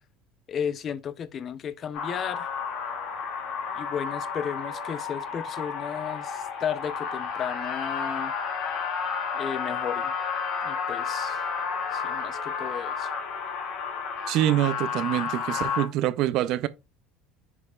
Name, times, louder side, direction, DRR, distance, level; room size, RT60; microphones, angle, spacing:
voice 1, 0.5-2.5 3.7-8.3 9.3-10.1 10.6-11.4 11.9-13.1, left 8 dB, 40° left, 0.6 m, -34 dB
sound 1, 1.9-15.9, left 6 dB, 60° left, 2.1 m, -31 dB
voice 2, 14.3-16.7, right 13 dB, 60° right, 0.5 m, -25 dB
11.0 x 5.0 x 2.3 m
supercardioid pair, 100°, 0 cm